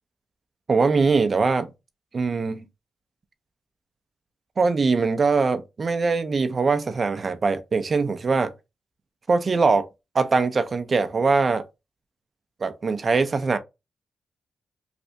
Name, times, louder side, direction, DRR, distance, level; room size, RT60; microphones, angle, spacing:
voice 1, 0.7-1.7 2.1-2.7 4.6-8.5 9.3-9.9 10.1-11.6 12.6-13.6, right 4 dB, 50° right, 0.5 m, -22 dB
3.2 x 2.5 x 2.8 m
cardioid pair, 60°, 0 cm